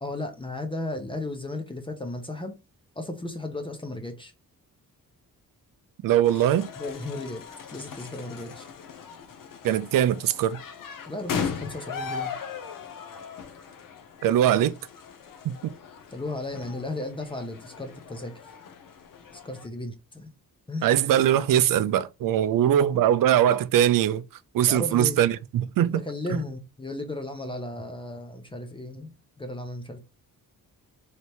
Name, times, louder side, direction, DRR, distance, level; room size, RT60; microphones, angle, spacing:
voice 1, 0.0-2.5 3.0-4.3 6.8-7.4 7.7-8.7 11.1-12.3 16.1-18.5 19.3-20.3 20.7-20.9 24.6-25.2 25.9-30.0, left 2 dB, 15° left, 0.6 m, -35 dB
voice 2, 6.0-6.7 9.6-10.6 14.2-14.8 15.4-15.7 20.8-24.2 24.5-26.0, right 11 dB, 65° right, 0.5 m, -21 dB
sound 1, 6.2-19.7, left 6 dB, 65° left, 0.8 m, -38 dB
3.3 x 2.9 x 4.3 m
wide cardioid pair, 175°, 36 cm